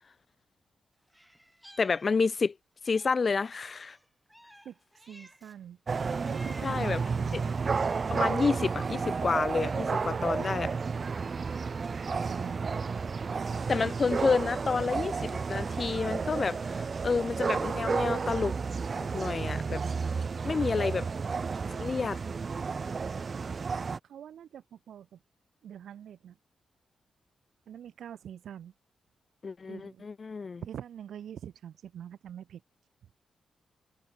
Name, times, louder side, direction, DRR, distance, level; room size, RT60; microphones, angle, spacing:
Meow, 1.1-2.5 2.8-5.6 6.0-7.0 7.5-8.3, equal, ahead, 5.5 m, -55 dB
voice 1, 1.8-2.5 2.8-4.0 6.6-7.0 7.3-7.4 8.1-10.7 13.7-18.5 19.0-19.8 20.4-21.1 21.8-22.2 29.4-30.6, left 4 dB, 35° left, 0.4 m, -29 dB
voice 2, 5.1-5.8 6.3-7.4 12.3-12.7 24.1-25.2 25.6-26.4 27.7-28.7 29.7-30.1 30.6-32.6, right 9 dB, 80° right, 7.7 m, -45 dB
sound 1, 5.9-24.0, right 5 dB, 35° right, 0.9 m, -32 dB
wide cardioid pair, 165°, 0 cm